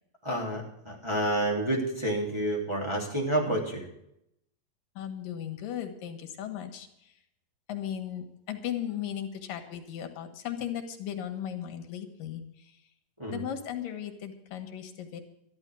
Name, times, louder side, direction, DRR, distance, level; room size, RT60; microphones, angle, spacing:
voice 1, 0.2-3.8 13.2-13.5, right 1 dB, 10° right, -3 dB, 3.1 m, -29 dB
voice 2, 5.0-7.1 7.7-12.7 13.3-15.2, left 10 dB, 85° left, 6 dB, 3.2 m, -37 dB
13.0 x 11.5 x 6.2 m, 0.78 s
omnidirectional pair, 3.8 m